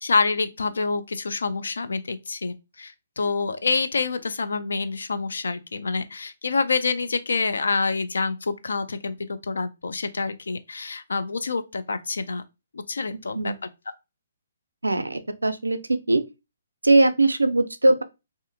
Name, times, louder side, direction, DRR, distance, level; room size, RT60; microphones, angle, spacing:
voice 1, 0.0-12.4 12.7-13.5, left 4 dB, 75° left, 0.3 m, -27 dB
voice 2, 14.8-16.2 16.8-18.0, right 2 dB, 85° right, 0.4 m, -20 dB
2.5 x 2.4 x 2.6 m
figure-of-eight pair, 130°, 0 cm